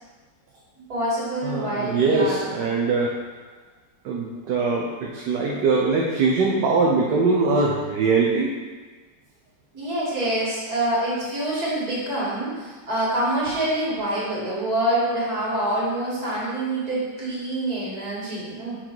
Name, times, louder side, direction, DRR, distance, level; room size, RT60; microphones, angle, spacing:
voice 1, 0.9-2.6 9.7-18.8, right 1 dB, 60° right, -7 dB, 2.5 m, -26 dB
voice 2, 1.4-3.1 4.0-8.5, right 4 dB, 75° right, -2 dB, 1.3 m, -22 dB
6.2 x 3.9 x 4.5 m, 1.3 s
omnidirectional pair, 1.9 m